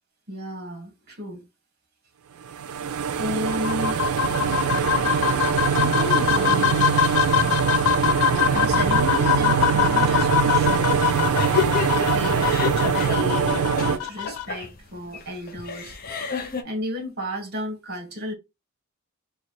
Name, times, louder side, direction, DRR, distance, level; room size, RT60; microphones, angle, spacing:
voice 1, 0.3-1.4 3.2-4.1 5.7-6.9 8.3-11.0 11.9-16.0 16.6-18.3, left 1 dB, 45° right, 1.3 m, -33 dB
sound 1, 2.5-14.0, right 7 dB, 85° right, 0.4 m, -23 dB
sound 2, 3.5-14.4, left 10 dB, 90° left, 0.3 m, -24 dB
sound 3, 10.9-16.6, left 6 dB, 40° left, 0.6 m, -31 dB
3.1 x 2.4 x 4.3 m
head